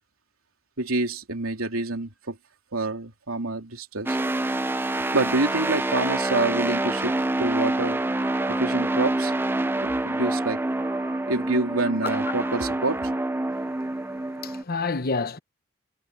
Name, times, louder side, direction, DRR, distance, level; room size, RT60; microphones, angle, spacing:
voice 1, 0.8-2.4 2.7-4.2 5.1-8.0 8.5-9.3 9.8-10.6 11.3-13.1, right 2 dB, 90° right, 3.1 m, -27 dB
sound 1, 4.1-14.6, right 2 dB, 10° right, 0.5 m, -26 dB
Wind instrument woodwind instrument, 6.4-13.8, right 2 dB, 30° right, 5.2 m, -45 dB
voice 2, 13.5-15.4, left 4 dB, 45° left, 1.1 m, -31 dB
head